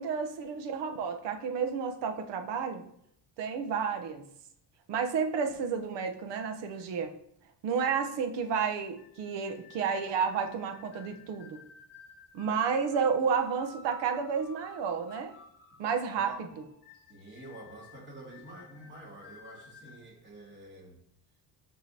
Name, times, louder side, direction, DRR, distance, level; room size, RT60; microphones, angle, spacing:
voice 1, 0.0-2.8 3.4-4.2 4.9-7.1 7.6-11.6 12.3-15.3 15.8-16.5, right 6 dB, 80° right, 5 dB, 1.0 m, -31 dB
sound 1, 8.4-20.1, left 4 dB, 25° left, 0.8 m, -55 dB
voice 2, 17.1-21.0, right 1 dB, 25° right, -4 dB, 2.4 m, -48 dB
11.5 x 3.8 x 2.8 m, 0.71 s
cardioid pair, 150°, 42 cm